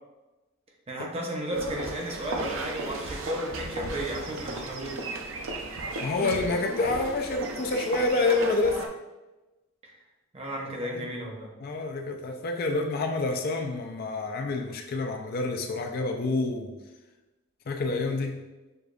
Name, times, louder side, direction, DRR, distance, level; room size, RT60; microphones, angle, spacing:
voice 1, 0.9-5.0 9.8-10.0 10.3-11.5, right 1 dB, 30° right, 0 dB, 0.6 m, -34 dB
sound 1, 1.5-8.9, right 2 dB, 80° right, 0.5 m, -35 dB
voice 2, 6.0-8.8 10.9-11.1 11.6-16.7 17.7-18.4, left 3 dB, 50° left, 4 dB, 0.4 m, -28 dB
6.4 x 2.4 x 2.3 m, 1.1 s
head